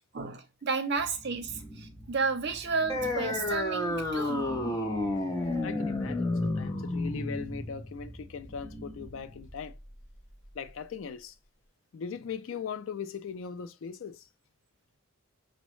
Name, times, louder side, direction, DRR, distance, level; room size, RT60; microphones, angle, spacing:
voice 1, 0.1-4.4, right 4 dB, 50° right, 0.6 m, -32 dB
sound 1, 0.9-9.5, equal, ahead, 1.8 m, -47 dB
sound 2, 2.9-9.9, left 2 dB, 20° left, 0.6 m, -31 dB
voice 2, 5.6-9.8 10.5-11.3 11.9-14.2, left 6 dB, 65° left, 0.4 m, -39 dB
5.3 x 2.0 x 3.1 m
head